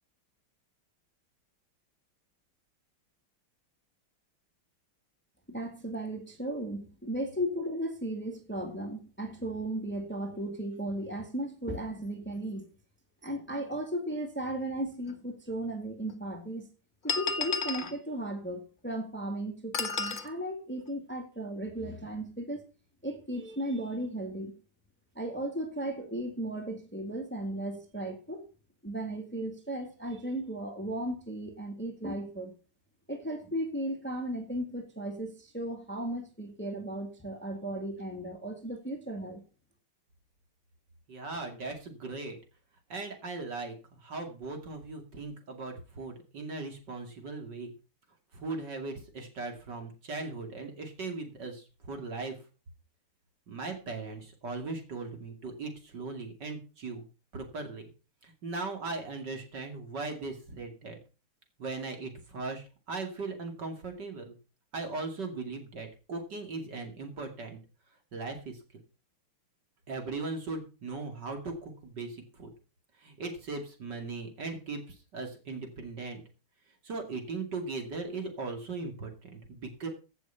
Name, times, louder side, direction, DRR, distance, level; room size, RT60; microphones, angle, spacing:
voice 1, 5.5-12.7 13.2-16.7 17.0-22.6 23.0-24.5 25.2-28.5 28.8-32.5 33.1-39.4, right 1 dB, 5° left, 1.8 m, -35 dB
sound 1, 15.1-15.2 16.1-16.2 17.1-17.9 19.7-20.3, left 5 dB, 35° left, 0.8 m, -31 dB
voice 2, 41.1-42.4 42.9-43.7 44.0-47.7 48.3-52.3 53.5-57.0 57.3-57.8 58.2-61.0 61.6-64.3 64.7-67.6 68.1-68.6 69.9-72.5 73.0-74.8 75.1-76.2 76.8-79.9, right 3 dB, 55° right, 3.0 m, -38 dB
15.5 x 6.5 x 5.7 m
omnidirectional pair, 2.3 m